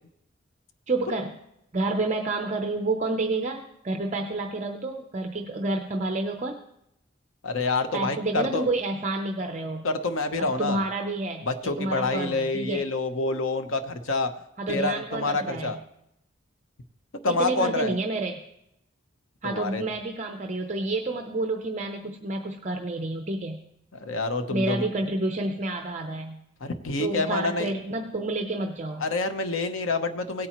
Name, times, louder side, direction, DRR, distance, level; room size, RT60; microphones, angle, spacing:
voice 1, 0.9-1.4 1.7-6.6 7.9-9.9 10.4-12.8 14.6-15.8 17.3-18.4 19.4-23.6 24.5-26.4 27.0-29.0, right 2 dB, 35° right, 4 dB, 0.6 m, -29 dB
voice 2, 7.4-8.7 9.8-10.8 11.4-14.3 14.7-15.8 17.2-17.9 19.4-19.8 24.0-24.9 26.6-27.7 29.0-30.5, left 3 dB, 90° left, 8 dB, 0.9 m, -27 dB
17.5 x 8.7 x 3.0 m, 0.82 s
head